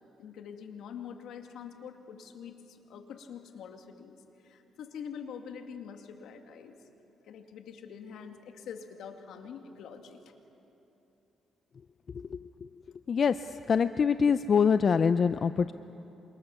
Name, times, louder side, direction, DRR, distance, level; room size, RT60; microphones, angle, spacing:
voice 1, 0.2-6.8 7.3-10.2, left 7 dB, 80° left, 5 dB, 2.3 m, -45 dB
voice 2, 12.1-12.5 13.1-15.7, left 6 dB, 45° left, 11 dB, 0.5 m, -25 dB
28.0 x 25.5 x 7.1 m, 3.0 s
cardioid pair, 90°, 0 cm